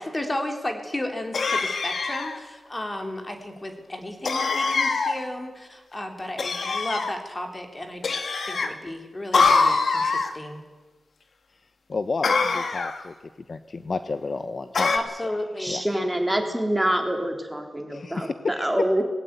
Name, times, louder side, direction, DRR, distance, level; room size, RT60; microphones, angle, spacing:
voice 1, 0.0-10.6 14.9-15.8, left 1 dB, 25° left, 4 dB, 3.5 m, -33 dB
sound 1, 1.3-2.4 4.2-5.2 6.4-7.1 8.0-8.7 9.3-10.3 12.2-13.0 14.7-15.0, left 4 dB, 65° left, 2.2 m, -23 dB
voice 2, 11.9-13.1 13.5-15.0 15.7-15.8 17.9-18.6, left 3 dB, 50° left, 10 dB, 1.0 m, -31 dB
voice 3, 15.6-18.3 18.6-19.0, right 1 dB, 5° right, 3 dB, 3.7 m, -25 dB
20.0 x 17.0 x 9.4 m, 1.2 s
wide cardioid pair, 95°, 0 cm